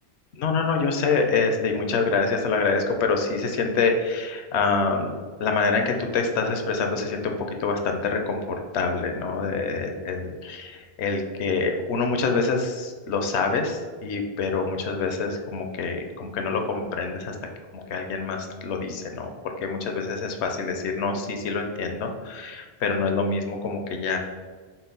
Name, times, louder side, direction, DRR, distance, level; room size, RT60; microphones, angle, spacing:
voice 1, 0.4-5.1 5.4-17.3 17.7-19.3 19.6-24.2, left 4 dB, 75° left, 4 dB, 0.9 m, -26 dB
6.0 x 2.1 x 3.9 m, 1.5 s
omnidirectional pair, 1.1 m